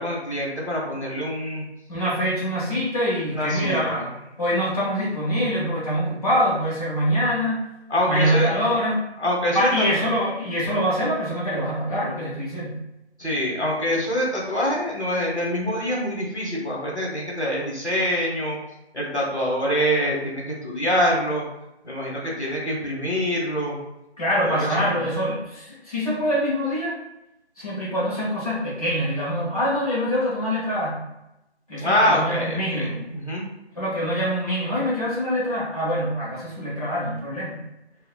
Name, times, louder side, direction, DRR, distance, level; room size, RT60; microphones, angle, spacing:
voice 1, 0.0-1.6 3.3-4.0 7.9-8.5 9.2-9.8 13.2-18.6 18.9-21.4 21.8-23.8 24.4-25.0 31.8-33.4, equal, 85° left, -3 dB, 1.4 m, -25 dB
voice 2, 1.9-4.1 4.4-7.6 8.1-9.0 9.5-12.7 24.2-27.0 27.6-31.0 31.7-33.0 33.7-37.6, equal, 35° left, -9 dB, 1.0 m, -24 dB
3.6 x 2.7 x 2.4 m, 0.89 s
figure-of-eight pair, 170°, 33 cm